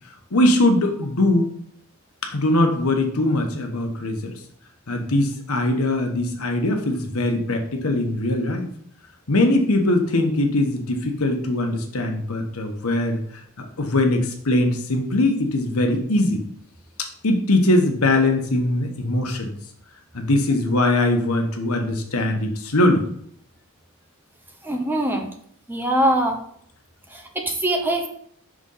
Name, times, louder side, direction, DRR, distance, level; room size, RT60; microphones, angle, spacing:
voice 1, 0.3-1.5 2.3-4.3 4.9-8.7 9.3-13.2 13.6-16.4 17.2-19.5 20.1-23.0, left 1 dB, 85° left, 3 dB, 1.2 m, -21 dB
voice 2, 24.6-25.3 25.7-26.4 27.1-28.1, right 1 dB, 10° right, 3 dB, 0.8 m, -22 dB
6.2 x 3.8 x 5.5 m, 0.65 s
head